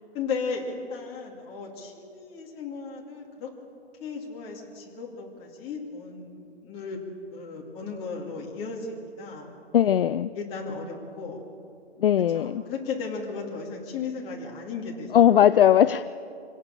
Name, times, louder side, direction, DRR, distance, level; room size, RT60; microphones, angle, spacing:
voice 1, 0.1-3.5 4.0-7.0 7.3-9.5 10.3-11.4 12.3-15.5, left 4 dB, 15° left, -1 dB, 2.5 m, -35 dB
voice 2, 9.7-10.3 12.0-12.6 15.1-16.0, left 10 dB, 55° left, 14 dB, 0.5 m, -19 dB
25.5 x 18.0 x 6.7 m, 2.4 s
hypercardioid pair, 165°, 34 cm